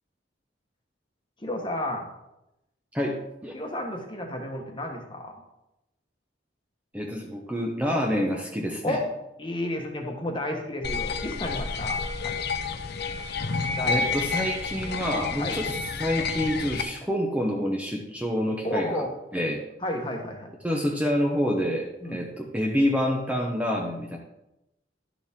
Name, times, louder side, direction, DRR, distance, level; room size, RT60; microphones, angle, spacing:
voice 1, 1.4-2.1 3.5-5.3 8.8-9.0 9.4-12.4 13.8-14.1 15.4-15.6 18.6-19.1 19.8-20.5 22.0-22.2, left 1 dB, 25° left, 2 dB, 1.3 m, -32 dB
voice 2, 2.9-3.5 6.9-9.0 13.8-19.0 19.3-19.6 20.6-24.2, equal, 5° right, -1 dB, 0.8 m, -27 dB
sound 1, 10.8-16.8, left 4 dB, 55° left, 0.7 m, -30 dB
11.0 x 6.9 x 3.6 m, 0.89 s
head